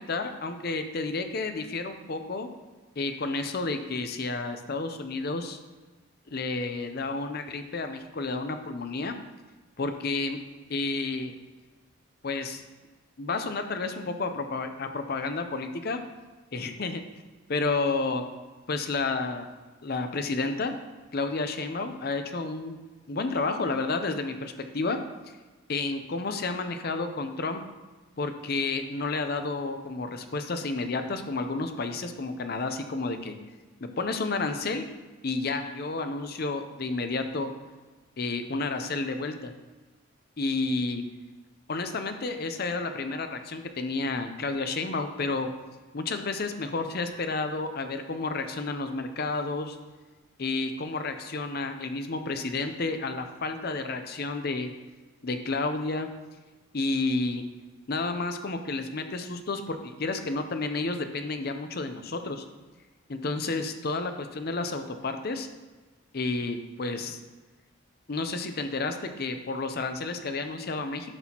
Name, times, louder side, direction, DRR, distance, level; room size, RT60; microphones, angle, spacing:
voice 1, 0.1-2.5 3.0-5.6 6.3-9.1 9.8-10.4 10.7-11.3 12.2-12.6 13.2-16.0 16.5-17.0 17.5-18.2 18.7-19.5 19.8-20.7 21.1-22.8 23.1-25.0 25.7-27.6 28.2-33.3 33.8-34.8 35.2-37.5 38.2-39.5 40.4-41.0 41.7-45.5 45.9-49.8 50.4-54.7 55.2-56.1 56.7-57.4 57.9-62.4 63.1-65.5 66.1-67.2 68.1-71.1, left 3 dB, 50° left, 7 dB, 0.6 m, -31 dB
11.0 x 6.1 x 2.9 m, 1.2 s
head